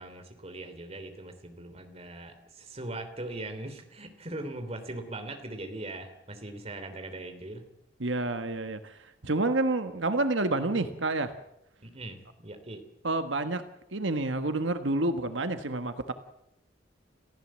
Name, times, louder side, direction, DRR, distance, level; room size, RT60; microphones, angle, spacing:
voice 1, 0.0-7.6 11.8-12.8, right 2 dB, 35° right, 7 dB, 3.3 m, -40 dB
voice 2, 8.0-11.3 13.0-13.7 13.9-16.1, right 2 dB, 90° right, 9 dB, 1.5 m, -29 dB
29.0 x 15.0 x 7.6 m, 0.80 s
head